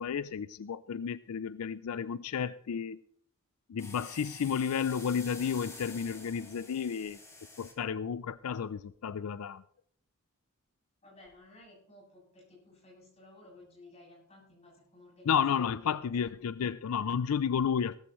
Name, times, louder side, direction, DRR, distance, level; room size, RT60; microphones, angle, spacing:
voice 1, 0.0-3.0 3.7-7.2 7.6-9.6 15.3-18.0, left 7 dB, 90° left, 0.4 m, -32 dB
sound 1, 3.8-7.7, left 3 dB, 15° left, 2.1 m, -48 dB
voice 2, 11.0-15.4 15.7-16.0, left 2 dB, 30° left, 7.5 m, -56 dB
17.0 x 14.0 x 3.1 m
head